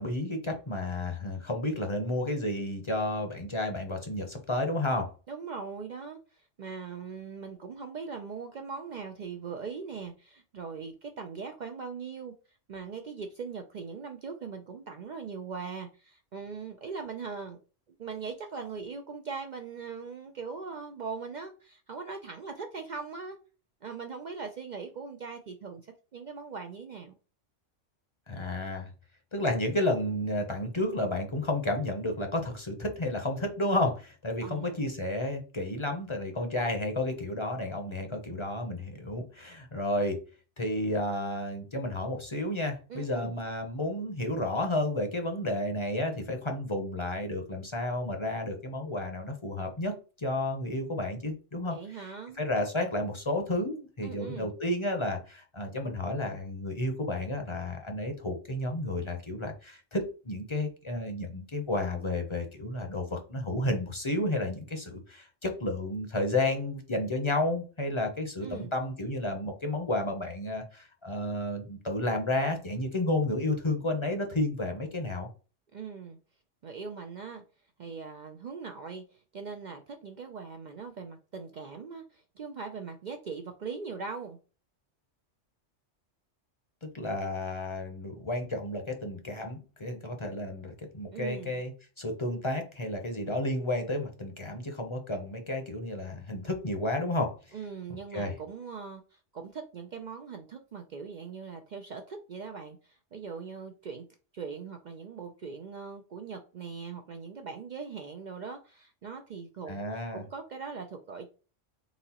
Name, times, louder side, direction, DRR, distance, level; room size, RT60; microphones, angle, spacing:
voice 1, 0.0-5.1 28.3-28.9 29.3-40.2 40.6-49.9 50.2-51.8 52.4-75.3 86.9-91.7 92.0-97.3 98.1-98.3 109.7-110.2, left 1 dB, 30° left, 4 dB, 0.7 m, -31 dB
voice 2, 5.3-17.6 17.9-23.4 23.8-27.1 34.4-34.9 42.9-43.3 51.7-52.4 54.0-54.5 68.4-68.7 75.7-76.2 76.6-77.4 77.8-84.4 91.1-91.6 97.5-104.1 104.3-111.3, right 5 dB, 60° right, 5 dB, 0.4 m, -40 dB
4.1 x 3.7 x 2.9 m, 0.35 s
omnidirectional pair, 1.3 m